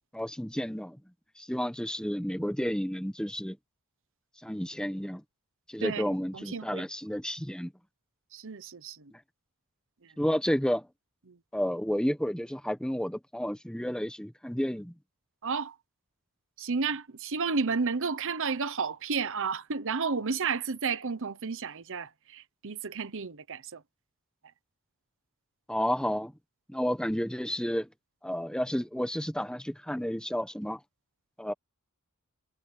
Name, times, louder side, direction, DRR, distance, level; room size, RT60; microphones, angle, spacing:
voice 1, 0.1-1.0 1.4-3.6 4.4-5.2 5.7-7.7 9.1-9.2 10.2-10.9 11.5-14.9 25.7-26.3 26.7-27.9 28.2-30.8 31.4-31.5, equal, 5° left, 1.3 m, -31 dB
voice 2, 5.8-6.9 8.3-9.1 10.0-10.1 11.3-11.4 15.4-15.7 16.6-23.8, right 5 dB, 65° right, 1.0 m, -32 dB
head